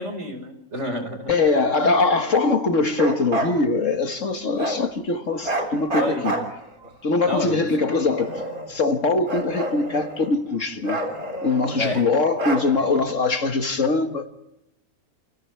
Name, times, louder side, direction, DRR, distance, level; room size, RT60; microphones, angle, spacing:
voice 1, 0.0-1.3 1.8-1.9 6.0-6.5 7.3-8.3 11.8-12.1, equal, 50° right, 5.3 m, -30 dB
voice 2, 1.3-6.4 7.0-8.4 8.7-11.0 11.4-14.3, left 3 dB, 55° left, 1.9 m, -22 dB
Bark, 2.9-3.6 4.6-4.8 5.4-6.9 7.7-8.8 9.2-10.4 10.8-11.9 12.4-13.1, right 1 dB, 70° right, 4.1 m, -28 dB
29.0 x 29.0 x 3.4 m
omnidirectional pair, 1.6 m